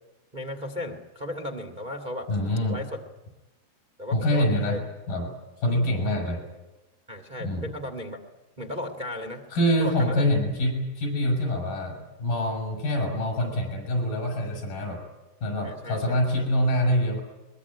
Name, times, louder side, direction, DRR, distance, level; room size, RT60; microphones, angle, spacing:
voice 1, 0.3-2.3 2.7-3.0 4.0-4.8 7.1-8.2 8.6-9.4 9.8-10.3 15.6-16.5, left 1 dB, 30° right, 3 dB, 0.7 m, -35 dB
voice 2, 2.3-2.8 4.1-4.8 5.1-5.3 5.6-6.4 7.4-7.7 9.5-15.0 15.4-17.2, left 1 dB, 60° left, 2 dB, 7.6 m, -25 dB
22.5 x 22.0 x 9.7 m, 1.1 s
omnidirectional pair, 4.8 m